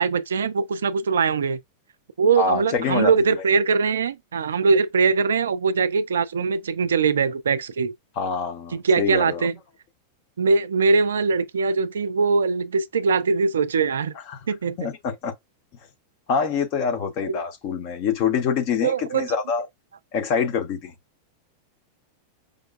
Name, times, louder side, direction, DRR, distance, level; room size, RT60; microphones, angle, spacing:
voice 1, 0.0-1.6 2.2-7.9 8.7-9.6 10.4-14.1 14.5-14.8 17.2-17.4 18.8-19.3, right 4 dB, 65° right, 0.3 m, -21 dB
voice 2, 2.4-3.4 8.2-9.5 14.1-14.4 14.8-15.3 16.3-19.7 20.1-20.9, left 6 dB, 40° left, 0.9 m, -25 dB
5.1 x 2.2 x 2.4 m
figure-of-eight pair, 90°, 0 cm